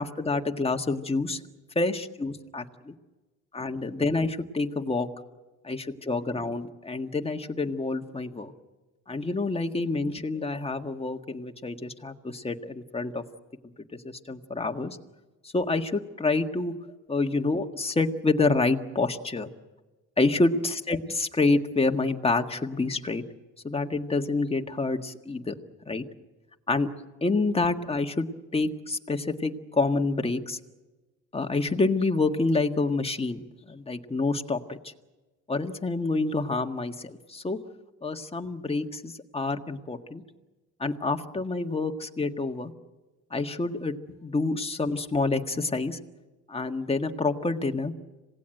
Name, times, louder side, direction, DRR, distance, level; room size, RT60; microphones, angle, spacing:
voice 1, 0.0-1.4 1.8-2.9 3.5-5.1 5.6-8.5 9.1-13.2 13.9-15.0 15.4-16.7 17.1-19.5 20.2-23.2 23.6-25.5 25.9-26.1 26.7-26.9 27.2-28.3 28.5-30.6 31.3-34.9 35.5-37.6 38.0-40.2 40.8-42.7 43.3-43.9 44.2-46.0 46.5-47.9, left 3 dB, 20° left, 5 dB, 1.8 m, -27 dB
27.0 x 18.0 x 7.9 m, 1.2 s
cardioid pair, 90°, 30 cm